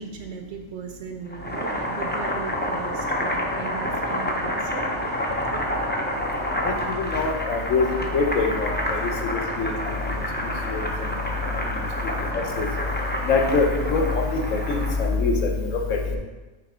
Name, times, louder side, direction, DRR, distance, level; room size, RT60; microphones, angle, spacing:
voice 1, 0.0-4.9 5.5-5.7, right 6 dB, 75° right, 4 dB, 0.9 m, -37 dB
Boiling, 1.3-15.1, left 1 dB, 15° left, 0.3 m, -28 dB
voice 2, 6.6-9.7 10.4-10.8 12.3-12.7 13.2-16.2, left 4 dB, 80° left, 1 dB, 1.2 m, -24 dB
5.8 x 3.4 x 4.8 m, 1.2 s
omnidirectional pair, 1.3 m